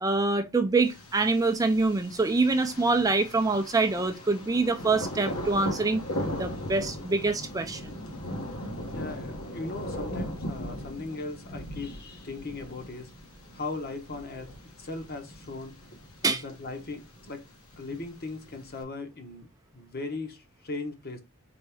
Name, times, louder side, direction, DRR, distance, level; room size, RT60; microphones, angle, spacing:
voice 1, 0.0-6.0 6.4-7.9 16.2-16.4, right 3 dB, 15° right, 0.4 m, -25 dB
Thunder, 0.8-18.8, equal, 70° left, 1.3 m, -39 dB
voice 2, 8.9-13.1 13.5-15.7 16.2-17.4 17.8-21.2, left 3 dB, 45° left, 1.0 m, -38 dB
4.3 x 3.6 x 3.4 m
head